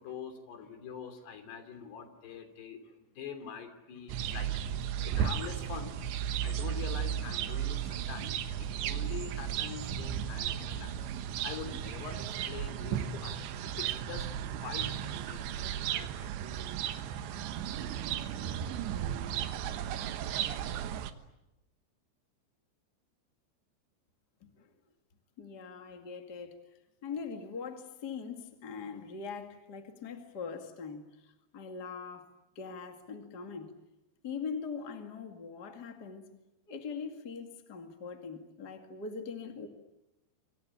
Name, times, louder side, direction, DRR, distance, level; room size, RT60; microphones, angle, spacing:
voice 1, 0.0-4.6 5.1-6.0 6.4-14.3 14.6-15.6 15.9-16.3 17.2-17.3 18.3-18.5 18.8-18.9, left 7 dB, 60° left, 5.0 m, -45 dB
sound 1, 4.1-21.1, right 9 dB, 75° right, 3.4 m, -35 dB
voice 2, 24.4-24.7 25.4-26.6 27.0-33.7 34.2-36.3 36.7-39.7, left 5 dB, 45° left, 1.3 m, -42 dB
26.0 x 26.0 x 8.7 m
omnidirectional pair, 5.4 m